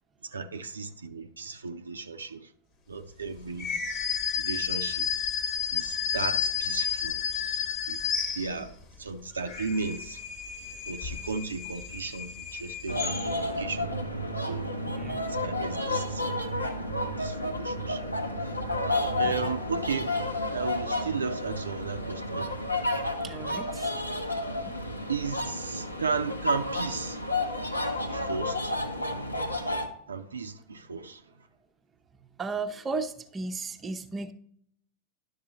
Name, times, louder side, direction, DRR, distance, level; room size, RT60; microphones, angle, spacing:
voice 1, 0.2-2.5 2.9-3.7 4.4-5.1 5.7-7.2 7.9-8.0 8.3-10.2 10.9-13.9 14.5-14.7 15.3-16.2 16.8-18.0 19.2-20.1 20.5-22.5 25.1-27.2 28.0-28.7 30.1-31.2, right 4 dB, 75° right, 0.5 m, -35 dB
sound 1, 3.6-8.8 9.3-13.6, left 8 dB, 40° left, 1.0 m, -32 dB
sound 2, 12.9-29.9, left 1 dB, 85° left, 0.9 m, -31 dB
voice 2, 23.2-23.9 24.4-24.7 32.4-34.3, right 3 dB, 20° right, 0.7 m, -35 dB
11.0 x 6.6 x 2.9 m
figure-of-eight pair, 90°, 0 cm